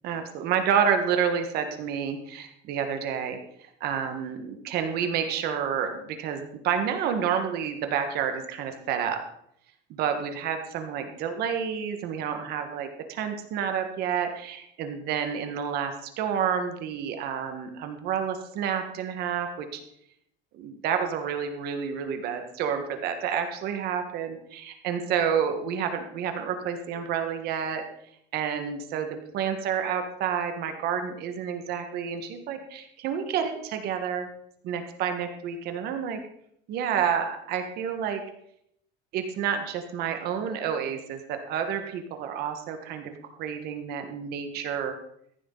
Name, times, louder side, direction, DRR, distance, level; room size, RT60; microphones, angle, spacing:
voice 1, 0.0-3.4 3.8-9.2 9.9-19.8 20.5-27.8 28.3-29.1 29.3-34.3 34.6-36.2 36.7-38.2 39.1-43.1 43.4-44.9, right 7 dB, 55° right, 6 dB, 1.6 m, -29 dB
15.0 x 11.0 x 4.0 m, 0.72 s
cardioid pair, 180°, 20 cm